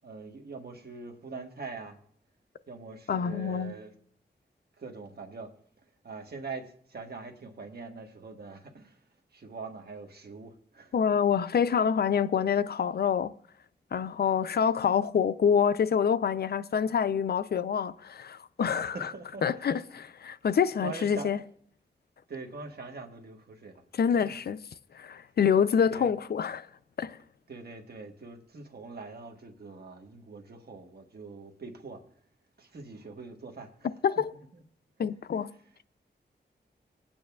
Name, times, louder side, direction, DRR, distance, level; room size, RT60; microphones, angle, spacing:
voice 1, 0.0-2.0 2.7-3.9 4.8-5.5 6.0-9.0 9.3-10.9 18.9-19.5 20.8-21.4 22.3-23.8 24.2-24.3 25.9-26.1 27.5-32.0 32.6-33.9 34.5-34.6 35.3-35.6, right 4 dB, 60° right, 1.3 m, -43 dB
voice 2, 3.1-3.7 10.9-13.3 13.9-19.1 19.4-21.4 24.0-24.6 24.9-26.7 27.0-27.2 34.0-34.3 35.0-35.5, left 7 dB, 60° left, 0.4 m, -26 dB
21.5 x 8.8 x 2.3 m
wide cardioid pair, 85°, 18 cm